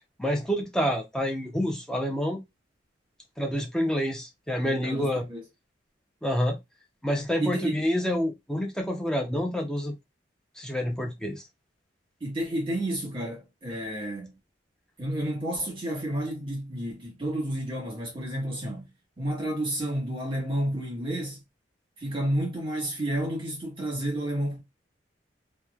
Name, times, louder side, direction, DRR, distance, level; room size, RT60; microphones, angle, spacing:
voice 1, 0.2-2.4 3.4-5.3 6.2-6.6 7.0-9.9 10.6-11.4, equal, 5° left, 0.5 m, -28 dB
voice 2, 4.7-5.4 7.4-7.8 12.2-14.3 15.0-18.9 19.2-21.4 22.0-24.6, right 1 dB, 30° right, 1.2 m, -31 dB
3.0 x 2.1 x 2.3 m
head